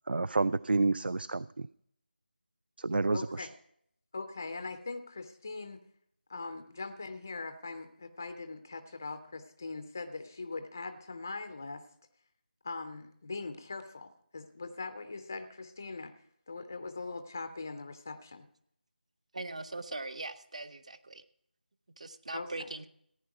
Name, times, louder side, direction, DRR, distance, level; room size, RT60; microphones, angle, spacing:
voice 1, 0.1-1.7 2.8-3.5, right 3 dB, 65° right, 18 dB, 0.4 m, -29 dB
voice 2, 3.1-3.5 4.1-5.8 6.3-11.8 12.6-16.2 16.5-18.5 22.3-22.7, left 3 dB, 15° left, 9 dB, 0.4 m, -41 dB
voice 3, 19.3-21.2 22.0-22.9, right 2 dB, 40° right, 13 dB, 0.7 m, -41 dB
15.0 x 9.5 x 4.7 m, 0.69 s
figure-of-eight pair, 175°, 6 cm